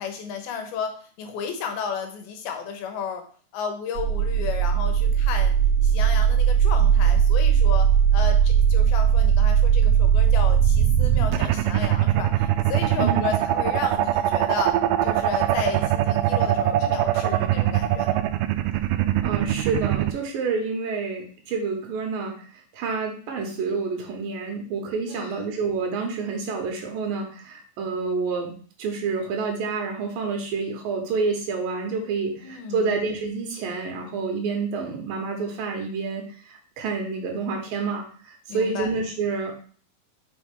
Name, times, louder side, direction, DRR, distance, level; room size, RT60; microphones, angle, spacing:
voice 1, 0.0-3.2 3.5-5.5 5.8-14.8 15.0-18.2 25.1-25.4 32.4-33.0 38.5-38.9, left 6 dB, 85° left, 5 dB, 2.9 m, -33 dB
sound 1, 4.0-20.1, right 9 dB, 90° right, 1.8 m, -20 dB
voice 2, 13.0-13.3 19.2-22.4 22.7-28.5 28.8-39.6, right 4 dB, 75° right, 2 dB, 2.9 m, -28 dB
6.2 x 5.3 x 3.6 m, 0.43 s
omnidirectional pair, 4.3 m